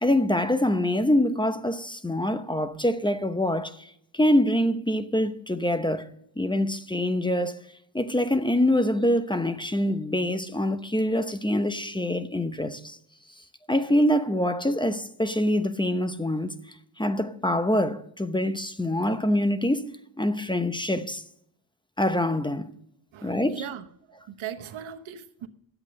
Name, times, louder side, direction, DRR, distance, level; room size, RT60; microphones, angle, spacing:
voice 1, 0.0-6.1 6.4-7.6 7.9-13.0 13.7-16.6 17.0-19.9 20.2-21.2 22.0-22.7 23.2-23.6, left 1 dB, 10° left, 0.8 m, -25 dB
voice 2, 23.1-25.5, right 9 dB, 90° right, 1.1 m, -39 dB
11.5 x 8.1 x 6.4 m
cardioid pair, 85°, 46 cm